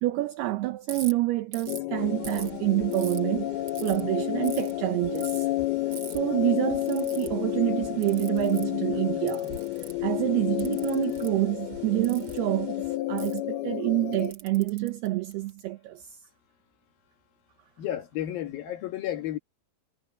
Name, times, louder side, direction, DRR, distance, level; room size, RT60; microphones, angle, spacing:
voice 1, 0.0-3.5 3.8-5.5 6.1-9.5 10.0-16.1, right 18 dB, 80° right, 2.3 m, -27 dB
Ratchet pawl, 0.9-1.1 1.5-1.8 2.2-3.2 3.7-4.0 4.4-4.7 5.1-5.4 5.9-6.2 6.8-7.3 8.0-8.7 9.3-10.0 10.6-11.3 12.0-12.4 13.2-13.4 14.1-15.6, right 5 dB, 35° right, 2.0 m, -42 dB
sound 1, 1.7-14.3, left 16 dB, 85° left, 2.2 m, -31 dB
sound 2, 2.0-13.0, right 5 dB, 60° right, 7.5 m, -51 dB
voice 2, 17.8-19.4, left 12 dB, 65° left, 2.6 m, -32 dB
omnidirectional pair, 5.7 m